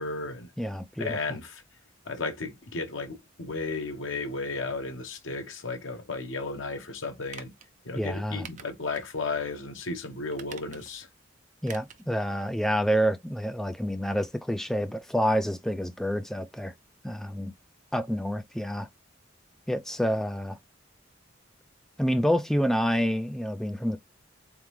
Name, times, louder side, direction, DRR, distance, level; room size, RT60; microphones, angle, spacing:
voice 1, 0.0-0.5 1.0-1.6 2.1-7.5 7.8-11.1, left 3 dB, 85° left, 0.9 m, -34 dB
voice 2, 0.6-1.2 8.0-8.5 11.6-16.7 17.0-17.5 17.9-18.9 19.7-20.6 22.0-24.0, equal, ahead, 0.3 m, -28 dB
sound 1, 7.3-7.7 8.4-9.1 9.5-9.6 10.3-11.0 11.6-12.1 12.4-12.5, right 7 dB, 40° right, 0.6 m, -46 dB
3.9 x 3.6 x 3.1 m
head